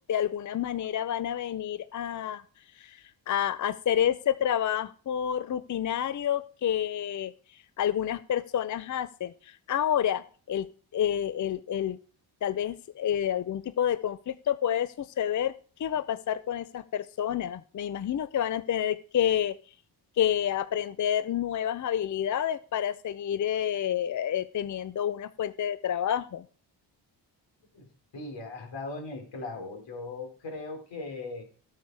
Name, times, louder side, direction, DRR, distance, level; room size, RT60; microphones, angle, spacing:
voice 1, 0.1-2.4 2.8-7.3 7.8-10.7 10.9-12.0 12.4-15.5 15.8-19.6 20.2-26.4, left 10 dB, 45° left, 15 dB, 0.6 m, -29 dB
voice 2, 27.7-31.4, left 3 dB, 90° left, 3 dB, 4.1 m, -39 dB
17.0 x 6.5 x 4.7 m, 0.40 s
cardioid pair, 110°, 43 cm